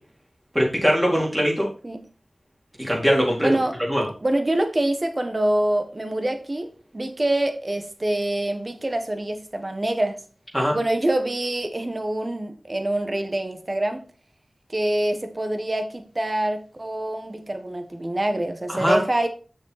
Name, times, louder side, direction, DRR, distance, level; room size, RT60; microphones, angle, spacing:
voice 1, 0.5-1.7 2.8-3.5 3.9-4.1 10.5-10.8 18.7-19.0, equal, 5° right, 4.1 m, -21 dB
voice 2, 3.4-3.8 4.2-10.2 10.7-14.1 14.7-19.3, right 1 dB, 35° right, 1.4 m, -25 dB
6.9 x 6.5 x 4.2 m
wide cardioid pair, 70°, 0 cm